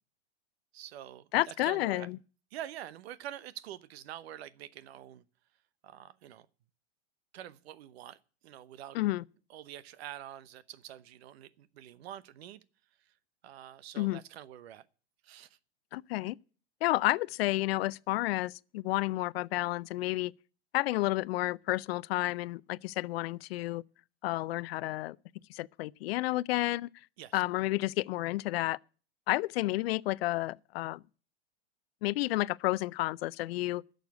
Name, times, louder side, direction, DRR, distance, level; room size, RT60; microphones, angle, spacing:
voice 1, 0.7-2.1 2.5-5.2 5.8-6.5 7.3-8.2 8.4-9.0 9.5-12.6 13.4-14.9 15.2-15.6 27.2-27.4, right 11 dB, 65° right, 1.0 m, -46 dB
voice 2, 1.3-2.2 8.9-9.2 14.0-14.2 15.9-16.4 16.8-20.3 20.7-23.8 24.2-25.2 25.5-26.9 27.3-28.8 29.3-31.0 32.0-33.8, left 18 dB, 65° left, 0.5 m, -31 dB
11.5 x 6.6 x 9.4 m
hypercardioid pair, 115°, 33 cm